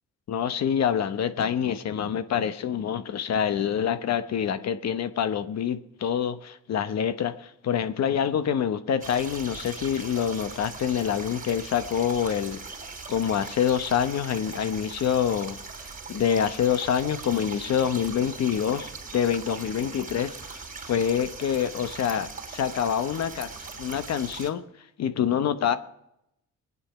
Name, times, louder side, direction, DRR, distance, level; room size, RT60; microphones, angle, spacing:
voice 1, 0.3-12.6 13.1-15.6 16.1-23.5 23.8-24.6 25.0-25.8, left 8 dB, 60° left, 11 dB, 1.0 m, -26 dB
sound 1, 9.0-24.5, right 4 dB, 30° right, 2.8 m, -40 dB
20.5 x 9.6 x 5.8 m, 0.82 s
cardioid pair, 90°, 30 cm